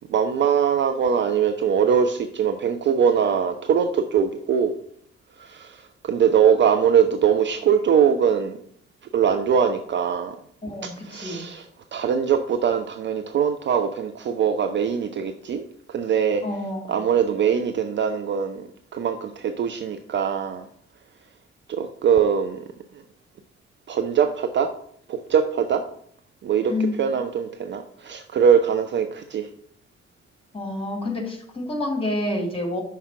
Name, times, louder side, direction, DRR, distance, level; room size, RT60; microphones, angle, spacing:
voice 1, 0.1-4.7 5.4-8.6 9.1-10.3 11.0-16.4 16.9-20.7 21.7-22.6 23.9-24.7 25.1-25.8 26.4-26.7 27.0-29.5, right 7 dB, 35° right, 7 dB, 0.5 m, -22 dB
voice 2, 10.6-11.5 16.4-17.0 26.7-27.0 30.5-32.8, left 2 dB, 15° left, 0 dB, 2.3 m, -28 dB
5.6 x 4.7 x 4.5 m, 0.64 s
figure-of-eight pair, 40°, 32 cm